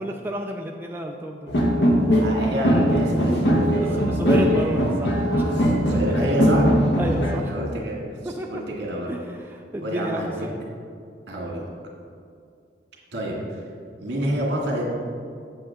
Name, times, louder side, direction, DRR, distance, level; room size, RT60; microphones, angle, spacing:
voice 1, 0.0-1.5 3.7-5.4 7.0-7.5 8.2-8.6 9.1-10.6, right 1 dB, 10° right, 1 dB, 0.4 m, -31 dB
sound 1, 1.5-7.4, equal, 80° left, 1.2 m, -20 dB
voice 2, 2.2-4.6 5.5-6.7 7.5-8.0 8.2-9.1 9.8-10.3 11.3-11.7 13.1-13.6 14.0-14.9, right 1 dB, 70° right, -3 dB, 2.2 m, -28 dB
8.0 x 7.9 x 3.7 m, 2.3 s
head